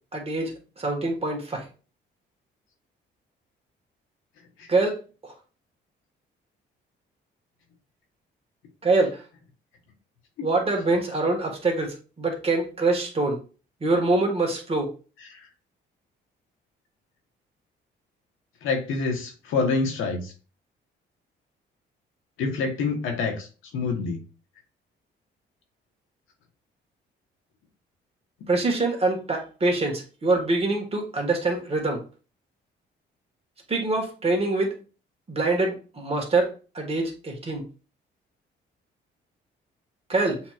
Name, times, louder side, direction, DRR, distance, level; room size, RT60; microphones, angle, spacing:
voice 1, 0.1-1.7 4.7-5.0 5.2-5.3 8.8-9.2 10.4-13.4 13.8-14.9 28.5-32.0 33.7-34.7 35.3-37.6 40.1-40.4, right 2 dB, 30° right, 1 dB, 1.6 m, -25 dB
voice 2, 18.6-20.3 22.4-23.5 23.7-24.2, left 4 dB, 85° left, 3 dB, 1.3 m, -27 dB
7.1 x 2.9 x 2.4 m, 0.35 s
cardioid pair, 90°, 20 cm